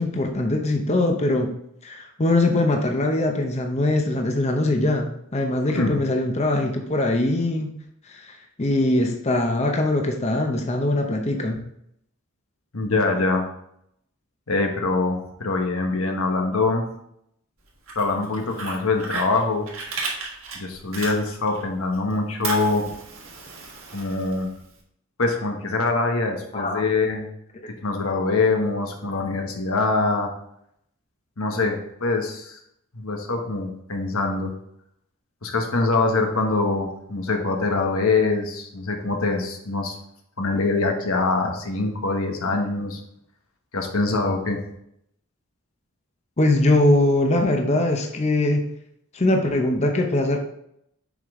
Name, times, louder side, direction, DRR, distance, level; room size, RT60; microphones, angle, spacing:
voice 1, 0.0-1.5 1.8-7.7 8.1-11.6 26.5-26.8 46.4-48.7 49.1-50.4, left 2 dB, 30° left, 3 dB, 0.7 m, -22 dB
voice 2, 12.7-13.5 14.5-16.9 17.9-19.7 20.5-22.8 23.9-24.5 25.2-27.3 27.7-30.3 31.4-32.6 32.9-34.5 35.4-39.9 40.4-43.0 43.7-44.6, left 3 dB, 85° left, 3 dB, 1.2 m, -24 dB
Fire, 17.7-21.6 21.9-24.7, right 3 dB, 70° right, 1.7 m, -34 dB
7.1 x 5.1 x 3.7 m, 0.74 s
head